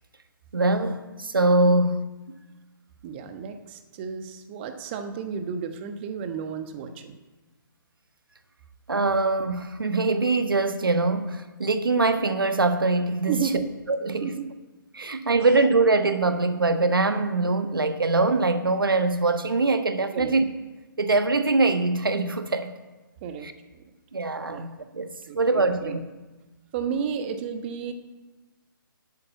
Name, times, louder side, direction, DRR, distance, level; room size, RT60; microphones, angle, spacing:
voice 1, 0.5-2.0 8.9-13.4 13.9-14.3 14.9-20.5 21.0-22.7 23.4-23.5 24.1-25.1 25.3-26.0, right 3 dB, 75° right, 1.3 m, -23 dB
voice 2, 3.0-7.2 13.3-13.7 14.2-14.5 20.1-20.3 23.2-23.5 23.7-23.8 24.5-24.7 25.3-26.0 26.7-27.9, right 7 dB, 30° right, 1.2 m, -32 dB
11.0 x 9.0 x 8.2 m
figure-of-eight pair, 135°, 12 cm